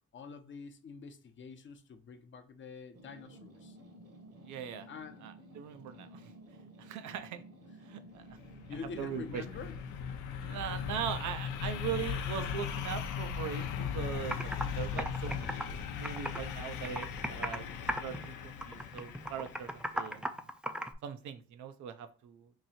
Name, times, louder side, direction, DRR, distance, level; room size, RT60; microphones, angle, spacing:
voice 1, 0.1-3.8 4.9-5.2 8.5-9.8, left 5 dB, 40° left, 0.7 m, -46 dB
sound 1, 2.9-10.0, right 1 dB, 50° right, 1.0 m, -53 dB
voice 2, 4.4-4.9 5.2-6.3 6.8-7.4 7.8-8.3 9.0-9.4 10.4-13.6 13.9-15.6 16.0-17.7 18.0-20.5 21.0-22.5, right 8 dB, 75° right, 0.6 m, -40 dB
sound 2, 8.3-20.0, left 7 dB, 85° left, 0.6 m, -38 dB
Computer keyboard, 13.9-14.0 14.3-14.6 15.0-16.5 16.8-17.6 17.9-18.3 18.6-20.9, equal, 5° right, 0.3 m, -36 dB
2.9 x 2.7 x 4.2 m
cardioid pair, 90°, 30 cm